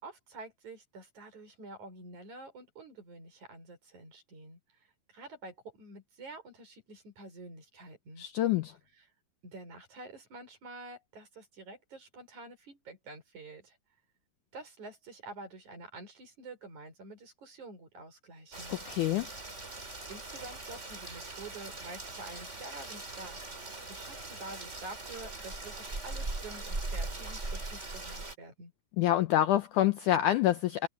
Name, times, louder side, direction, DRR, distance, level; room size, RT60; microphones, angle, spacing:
voice 1, 0.0-8.3 8.9-9.1 9.4-13.8 14.5-18.8 20.1-23.4 23.9-28.7, right 2 dB, 50° right, 7.0 m, -48 dB
voice 2, 8.2-8.7 18.9-19.3 29.0-30.9, left 13 dB, 80° left, 1.9 m, -26 dB
Rain, 18.5-28.4, right 2 dB, 20° right, 3.6 m, -40 dB
omnidirectional pair, 4.4 m